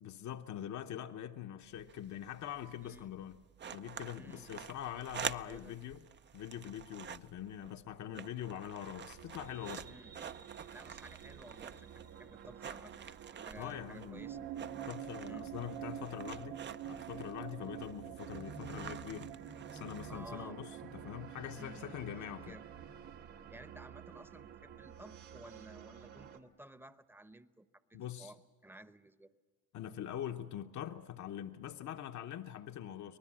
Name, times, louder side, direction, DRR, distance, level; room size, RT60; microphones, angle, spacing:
voice 1, 0.0-3.4 3.7-6.0 6.3-9.9 13.6-14.2 14.9-19.3 19.7-22.6 27.9-28.3 29.7-33.2, left 10 dB, 50° left, 6 dB, 0.9 m, -43 dB
sound 1, 1.6-20.5, right 8 dB, 30° right, 0.6 m, -48 dB
voice 2, 4.1-4.7 5.5-5.8 9.8-10.1 10.7-14.4 15.3-15.5 20.1-20.6 21.5-22.7 23.5-29.3, right 1 dB, 5° right, 13 dB, 0.9 m, -54 dB
sound 2, 9.1-26.4, right 9 dB, 80° right, 1.8 m, -48 dB
24.5 x 19.0 x 7.5 m, 1.5 s
supercardioid pair, 80°, 36 cm